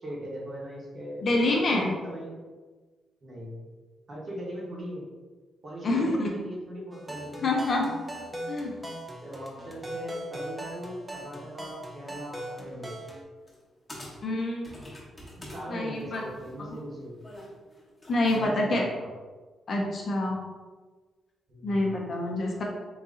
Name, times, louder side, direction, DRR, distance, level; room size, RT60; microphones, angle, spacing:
voice 1, 0.0-2.4 3.2-3.6 4.1-5.1 5.6-7.5 9.2-13.0 15.5-17.2 18.2-19.1 21.5-21.9, equal, 35° right, -3 dB, 1.0 m, -39 dB
voice 2, 1.2-1.9 5.8-6.4 7.4-7.9 8.5-8.7 14.2-14.8 15.7-16.2 16.6-16.7 18.1-18.9 19.7-20.4 21.6-22.6, left 2 dB, 40° left, -1 dB, 0.6 m, -27 dB
sound 1, 6.9-13.2, right 1 dB, 10° right, 0.5 m, -40 dB
sound 2, 13.5-13.6 13.9-15.6 16.0-18.4, left 1 dB, 15° left, 1.0 m, -44 dB
3.9 x 2.7 x 3.6 m, 1.3 s
cardioid pair, 160°, 0 cm